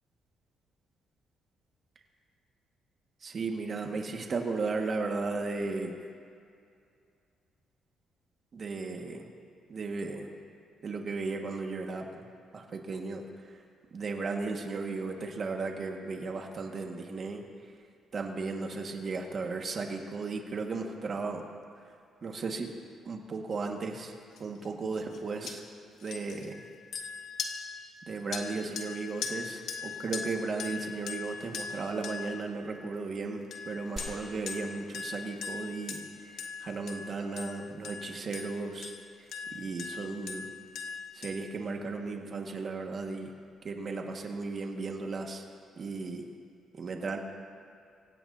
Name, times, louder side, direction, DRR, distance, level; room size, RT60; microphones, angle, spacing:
voice 1, 3.2-6.0 8.5-9.3 9.7-10.3 10.8-12.1 12.5-13.6 13.9-17.4 18.1-21.5 22.2-22.7 23.0-24.1 24.4-25.6 26.0-26.6 28.1-40.4 41.1-43.3 43.6-45.4 45.8-46.2 46.7-47.2, right 3 dB, 45° right, 2 dB, 1.8 m, -35 dB
sound 1, 24.4-24.7 24.9-25.2 25.5-25.6 26.0-33.1 33.5-41.4, left 6 dB, 75° left, 1.3 m, -41 dB
sound 2, 34.0-35.9 36.2-36.3, right 2 dB, 30° right, 1.4 m, -47 dB
24.5 x 16.5 x 2.8 m, 2.3 s
cardioid pair, 90°, 0 cm